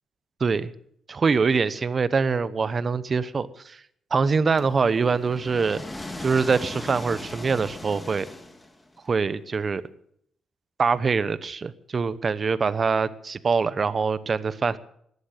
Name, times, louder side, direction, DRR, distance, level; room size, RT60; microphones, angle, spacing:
voice 1, 0.4-0.7 1.1-3.8 4.1-5.8 6.2-8.3 9.1-9.8 10.8-14.8, right 5 dB, 40° right, 16 dB, 1.0 m, -24 dB
sound 1, 4.6-9.0, left 1 dB, 10° left, 2.3 m, -38 dB
17.5 x 11.5 x 6.7 m, 0.69 s
cardioid pair, 90°, 0 cm